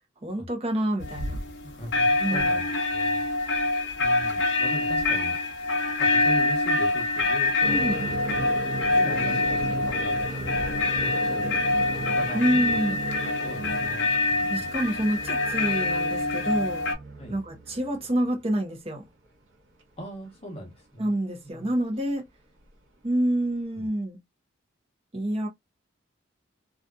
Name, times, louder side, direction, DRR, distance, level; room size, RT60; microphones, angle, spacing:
voice 1, 0.2-1.4 2.2-2.6 7.7-8.0 12.3-13.0 14.5-16.9 17.3-19.0 21.0-22.2 23.0-24.2 25.1-25.5, right 1 dB, 30° right, 0.7 m, -27 dB
sound 1, 1.0-1.6 1.9-17.0, left 2 dB, 65° left, 0.7 m, -25 dB
voice 2, 1.6-5.4 6.0-7.5 7.8-8.5 8.8-10.5 11.0-11.6 11.9-12.8 13.4-14.7 17.2-17.4 20.0-21.1 21.4-21.7 23.7-23.9, equal, 30° left, 0.9 m, -40 dB
sound 2, 7.6-18.6 18.9-19.0 20.2-20.3 21.8-21.9 23.4-23.5, right 2 dB, 70° right, 0.8 m, -36 dB
2.6 x 2.4 x 2.2 m
head